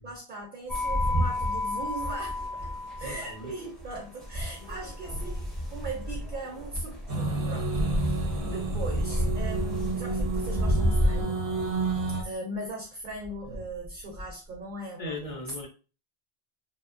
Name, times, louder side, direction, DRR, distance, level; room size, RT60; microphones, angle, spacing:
voice 1, 0.0-2.7 3.0-11.4 12.1-15.4, right 2 dB, 60° right, 0.6 m, -39 dB
sound 1, 0.7-11.2, equal, ahead, 0.6 m, -30 dB
voice 2, 3.0-3.5 11.8-12.2 13.5-13.7 15.0-15.7, left 2 dB, 45° left, 0.5 m, -39 dB
sound 2, 7.1-12.2, right 3 dB, 90° right, 0.9 m, -31 dB
2.8 x 2.1 x 2.4 m
omnidirectional pair, 1.1 m